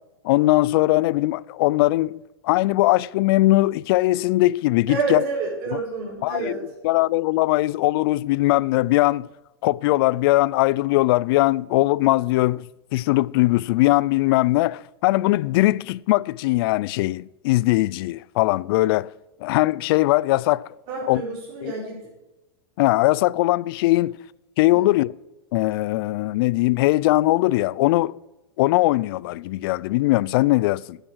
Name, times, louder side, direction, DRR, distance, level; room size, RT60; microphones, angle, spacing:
voice 1, 0.2-5.2 5.7-5.8 6.2-6.6 6.8-9.3 9.6-12.7 12.9-19.1 19.4-20.7 21.1-21.2 21.6-21.7 22.8-24.2 24.6-25.1 25.5-28.2 28.6-31.0, left 18 dB, 60° left, 0.4 m, -20 dB
voice 2, 4.9-6.6 20.9-22.0 24.7-24.9, right 4 dB, 55° right, 4.5 m, -28 dB
9.4 x 9.0 x 7.4 m
hypercardioid pair, 125°, 14 cm